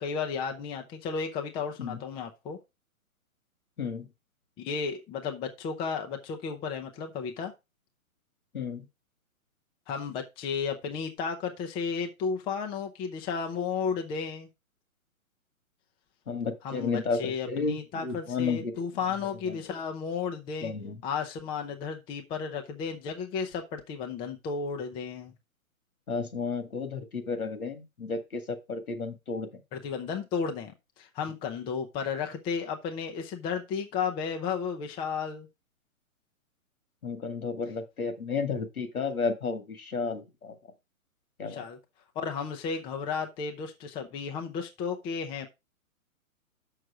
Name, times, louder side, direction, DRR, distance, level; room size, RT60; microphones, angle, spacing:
voice 1, 0.0-2.6 4.6-7.5 9.9-14.5 16.6-20.7 21.0-25.3 29.7-35.5 41.4-41.8 42.2-45.5, left 6 dB, 10° left, 0.6 m, -33 dB
voice 2, 16.3-17.8 18.0-18.7 19.5-19.6 20.6-21.0 26.1-29.5 37.0-40.6 41.4-41.6, left 4 dB, 80° left, 2.2 m, -32 dB
6.4 x 6.4 x 4.9 m
hypercardioid pair, 130°, 42 cm